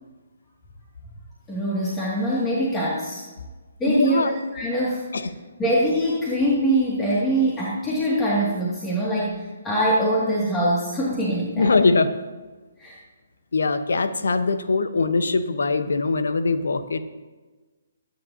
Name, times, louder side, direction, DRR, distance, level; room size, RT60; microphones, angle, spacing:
voice 1, 1.5-3.2 3.8-5.0 5.6-11.8 12.8-13.0, right 1 dB, 15° left, -6 dB, 2.3 m, -23 dB
voice 2, 3.9-4.3 5.1-5.2 11.6-12.1 13.5-17.0, left 3 dB, 65° left, 10 dB, 1.0 m, -21 dB
23.0 x 9.5 x 2.8 m, 1.3 s
figure-of-eight pair, 135°, 0 cm